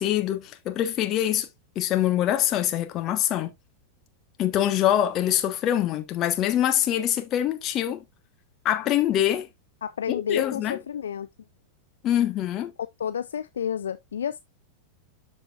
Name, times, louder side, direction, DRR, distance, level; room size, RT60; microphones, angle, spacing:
voice 1, 0.0-1.5 1.7-3.5 4.4-8.0 8.6-9.5 10.1-10.8 12.0-12.7, left 11 dB, 35° left, 1.3 m, -24 dB
voice 2, 9.8-11.3 13.0-14.4, left 8 dB, 65° left, 0.4 m, -30 dB
12.5 x 4.5 x 2.5 m
figure-of-eight pair, 90°, 0 cm